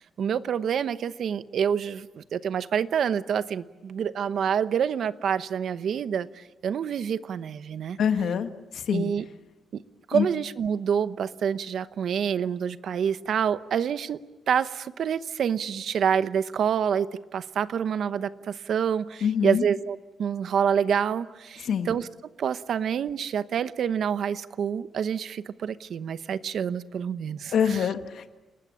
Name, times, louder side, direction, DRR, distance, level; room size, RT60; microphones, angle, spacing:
voice 1, 0.0-8.0 8.9-9.2 9.7-9.8 10.1-14.2 14.5-22.1 22.4-27.9, right 8 dB, 60° right, 13 dB, 0.9 m, -27 dB
voice 2, 8.0-9.1 10.1-10.3 19.2-19.6 21.6-21.9 27.5-28.3, left 7 dB, 65° left, 7 dB, 1.7 m, -25 dB
30.0 x 19.5 x 8.8 m, 1.1 s
wide cardioid pair, 155°, 0 cm